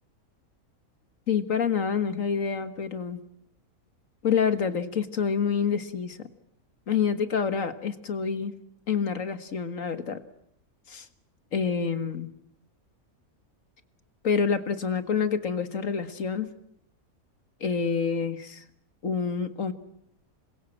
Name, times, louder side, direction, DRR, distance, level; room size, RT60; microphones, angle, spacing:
voice 1, 1.3-3.2 4.2-6.3 6.9-8.5 8.9-10.2 10.9-11.1 11.5-12.3 14.2-16.5 17.6-18.6 19.0-19.7, left 6 dB, 65° left, 10 dB, 2.0 m, -27 dB
27.5 x 22.5 x 7.7 m, 0.73 s
omnidirectional pair, 1.5 m